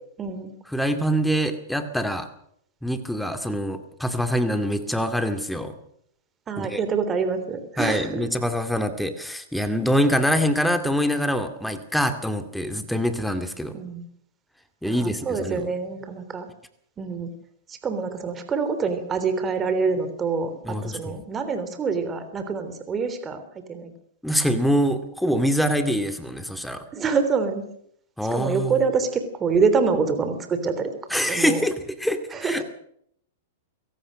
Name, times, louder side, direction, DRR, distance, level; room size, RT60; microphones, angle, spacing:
voice 1, 0.2-0.5 6.5-8.2 13.7-14.0 14.8-16.5 17.0-17.3 17.7-23.4 23.7-23.9 26.9-27.6 28.3-31.6 32.3-32.6, right 5 dB, 20° right, 9 dB, 3.3 m, -26 dB
voice 2, 0.7-2.3 2.8-5.7 6.6-6.8 7.8-13.7 14.8-15.7 20.6-21.0 24.2-26.8 28.2-28.7 31.1-32.6, equal, ahead, 8 dB, 2.3 m, -24 dB
24.0 x 17.5 x 6.5 m, 0.69 s
hypercardioid pair, 125°, 0 cm